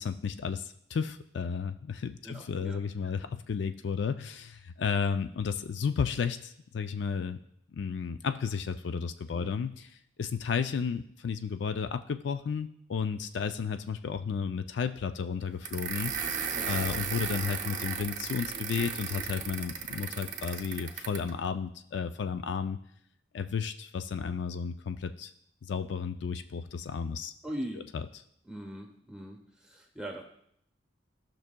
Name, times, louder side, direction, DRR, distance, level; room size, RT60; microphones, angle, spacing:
voice 1, 0.0-7.4 7.7-9.9 10.2-16.3 16.7-22.8 23.3-25.3 25.6-27.3 27.9-28.1, left 6 dB, 70° left, 9 dB, 0.4 m, -33 dB
voice 2, 2.2-3.1 9.3-9.5 16.5-16.7 27.4-27.8 28.5-30.2, right 1 dB, 5° right, 1 dB, 1.2 m, -41 dB
sound 1, 15.6-21.3, right 7 dB, 45° right, 0.7 m, -35 dB
15.0 x 6.0 x 2.2 m, 0.71 s
head